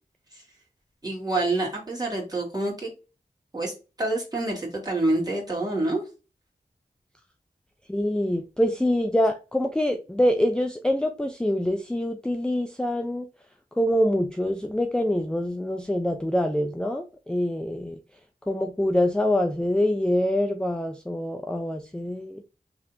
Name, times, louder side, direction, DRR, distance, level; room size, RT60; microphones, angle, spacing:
voice 1, 1.0-2.9 3.5-3.7 4.0-6.0, right 2 dB, 25° right, 2.0 m, -27 dB
voice 2, 7.9-13.3 13.8-18.0 18.5-22.5, left 1 dB, 5° left, 0.4 m, -25 dB
3.2 x 2.8 x 3.9 m
wide cardioid pair, 95°, 15 cm